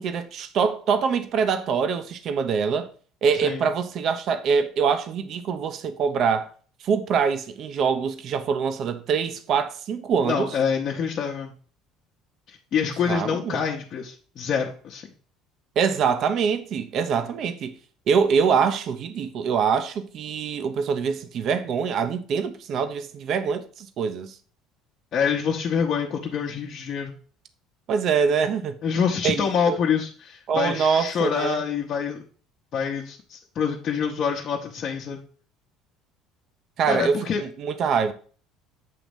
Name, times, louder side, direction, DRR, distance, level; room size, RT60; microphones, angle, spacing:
voice 1, 0.0-2.9 3.2-6.5 6.8-10.5 13.1-13.6 15.8-17.8 18.1-24.3 27.9-28.8 29.2-29.8 30.5-31.6 36.8-38.1, right 6 dB, 55° right, 0.7 m, -24 dB
voice 2, 10.2-11.5 12.5-15.1 25.1-27.1 28.8-32.2 32.7-35.2 36.8-37.4, left 7 dB, 50° left, 0.9 m, -26 dB
7.6 x 3.0 x 5.2 m
supercardioid pair, 80°, 0 cm